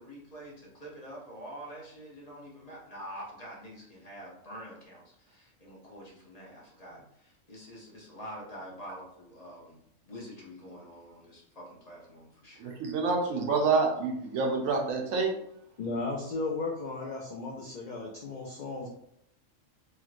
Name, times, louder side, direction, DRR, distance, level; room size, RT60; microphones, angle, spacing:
voice 1, 0.0-9.8 10.1-12.8, equal, 35° left, -4 dB, 0.7 m, -46 dB
voice 2, 12.6-15.3, right 4 dB, 85° right, 2 dB, 1.1 m, -27 dB
voice 3, 15.8-18.9, left 3 dB, 75° left, -1 dB, 0.4 m, -35 dB
3.1 x 2.9 x 2.4 m, 0.73 s
omnidirectional pair, 1.3 m